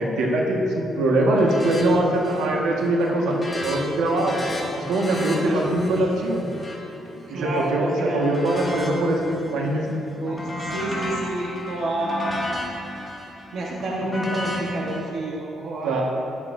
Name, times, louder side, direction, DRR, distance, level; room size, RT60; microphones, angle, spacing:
voice 1, 0.0-4.4 4.8-6.4 7.3-9.9 15.8-16.0, right 1 dB, 90° right, -2 dB, 1.6 m, -22 dB
sound 1, 1.4-1.8 2.1-2.6 2.9-7.7 8.2-9.5 9.9-15.0, left 1 dB, 15° left, 2.4 m, -33 dB
voice 2, 5.3-5.7 6.0-6.1 7.3-8.3 10.2-12.5 13.5-16.0, right 2 dB, 65° right, -3 dB, 1.3 m, -29 dB
13.0 x 11.0 x 2.7 m, 2.8 s
cardioid pair, 90°, 0 cm